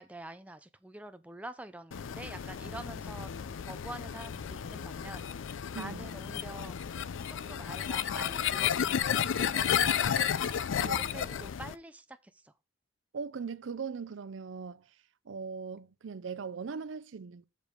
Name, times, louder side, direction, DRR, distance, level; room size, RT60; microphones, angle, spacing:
voice 1, 0.0-7.0 7.3-10.3 10.8-12.5, right 1 dB, 5° right, 0.4 m, -47 dB
sound 1, 1.9-11.7, left 8 dB, 80° left, 0.4 m, -32 dB
voice 2, 5.7-6.1 10.8-11.1 13.1-15.0 15.2-17.4, right 5 dB, 75° right, 0.5 m, -40 dB
6.6 x 5.2 x 4.9 m
head